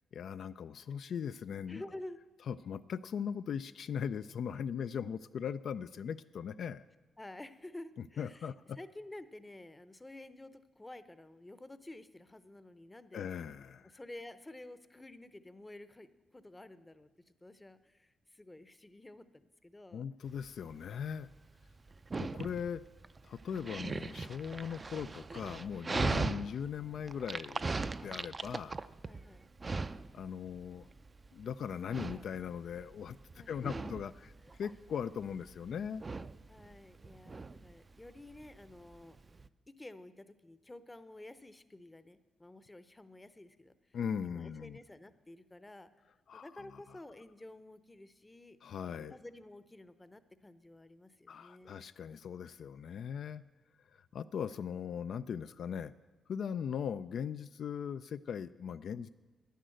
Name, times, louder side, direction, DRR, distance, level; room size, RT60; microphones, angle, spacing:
voice 1, 0.1-1.8 2.5-6.8 8.2-8.8 13.1-13.9 19.9-21.3 22.2-22.8 23.2-27.6 28.0-28.8 30.1-30.9 31.3-34.1 34.6-36.0 43.9-44.8 46.3-46.5 48.6-49.2 51.3-53.4 53.9-55.9 56.3-59.1, left 7 dB, 70° left, 12 dB, 0.3 m, -39 dB
voice 2, 1.7-2.2 7.2-13.3 13.8-20.1 29.0-29.4 33.4-33.9 34.4-34.6 36.5-39.2 39.7-45.9 46.3-48.6 48.9-51.8, left 1 dB, 15° left, 13 dB, 0.6 m, -51 dB
Dog, 20.3-39.5, right 3 dB, 30° right, 0.4 m, -40 dB
10.0 x 10.0 x 7.7 m, 1.2 s
cardioid pair, 95°, 0 cm